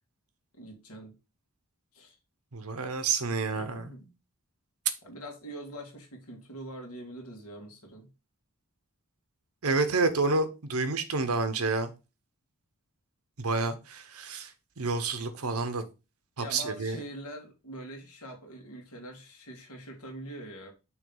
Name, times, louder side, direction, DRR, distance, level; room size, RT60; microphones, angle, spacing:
voice 1, 0.5-1.2 1.9-2.2 3.5-4.1 5.0-8.1 16.4-20.7, right 1 dB, 85° left, 2.3 m, -43 dB
voice 2, 2.5-3.9 9.6-11.9 13.4-14.5 14.8-15.8 16.4-17.0, right 3 dB, 80° right, 1.0 m, -29 dB
6.2 x 3.2 x 5.4 m
head